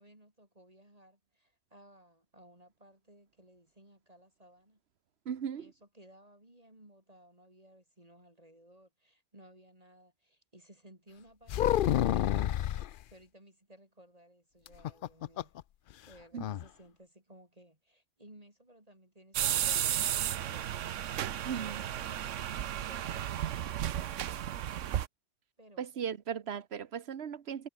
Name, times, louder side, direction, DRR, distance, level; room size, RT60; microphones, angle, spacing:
voice 1, 0.0-4.8 5.6-12.4 12.8-15.5 16.1-20.9 25.6-25.9, right 1 dB, 30° right, 4.9 m, -58 dB
voice 2, 5.3-5.7 16.3-16.4 21.5-21.8 25.8-27.7, right 8 dB, 60° right, 1.2 m, -37 dB
sound 1, 11.5-12.9 14.7-15.6 15.9-16.0 16.4-16.6, left 11 dB, 60° left, 0.5 m, -29 dB
sound 2, 19.3-25.1, right 11 dB, 80° right, 1.1 m, -33 dB
omnidirectional pair, 1.3 m